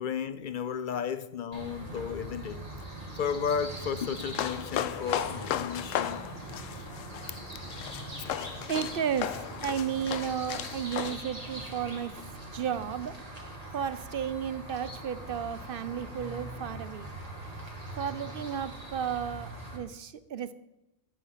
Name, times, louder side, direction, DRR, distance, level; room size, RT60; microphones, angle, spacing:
voice 1, 0.0-2.7 3.1-6.3 6.7-6.9 7.3-7.4, left 7 dB, 60° left, 0.5 m, -33 dB
sound 1, 1.5-19.8, right 1 dB, 30° right, 2.4 m, -42 dB
sound 2, 2.8-2.9 3.6-9.8 10.4-10.8 11.1-11.5, left 4 dB, 35° left, 1.7 m, -48 dB
sound 3, 4.2-11.2, left 11 dB, 85° left, 1.0 m, -35 dB
voice 2, 8.7-12.1 12.5-13.2 13.7-17.1 18.0-20.5, right 8 dB, 55° right, 0.7 m, -33 dB
10.5 x 9.4 x 5.7 m
omnidirectional pair, 1.3 m